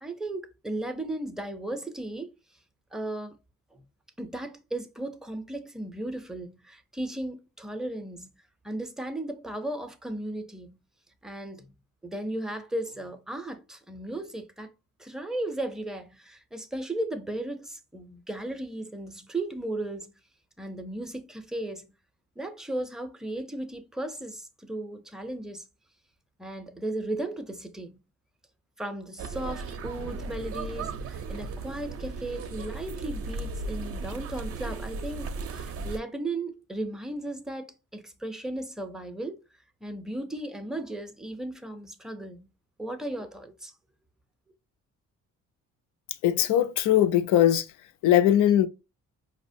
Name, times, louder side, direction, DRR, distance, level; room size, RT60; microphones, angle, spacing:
voice 1, 0.0-2.3 2.9-3.4 3.7-3.8 4.2-8.4 8.6-10.8 11.2-11.7 12.0-14.7 15.0-20.1 20.6-21.9 22.4-25.7 26.4-28.0 28.8-39.4 39.8-42.5 42.8-43.7, right 1 dB, ahead, 0.5 m, -35 dB
sound 1, 29.2-36.0, right 3 dB, 50° right, 0.5 m, -36 dB
voice 2, 46.2-47.7 48.0-48.7, left 11 dB, 85° left, 0.5 m, -20 dB
4.8 x 2.1 x 2.6 m
cardioid pair, 90°, 30 cm